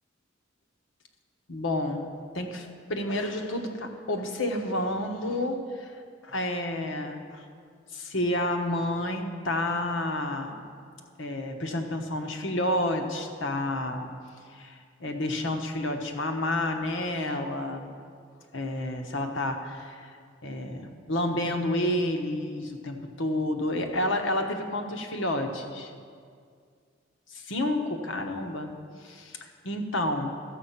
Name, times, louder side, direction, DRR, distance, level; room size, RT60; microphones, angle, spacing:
voice 1, 1.5-5.9 6.2-7.4 7.9-10.6 11.2-14.1 14.5-17.9 18.5-20.1 20.4-25.9 27.3-28.7 29.0-30.3, left 1 dB, 65° left, 4 dB, 1.1 m, -30 dB
13.5 x 7.6 x 5.7 m, 2.1 s
head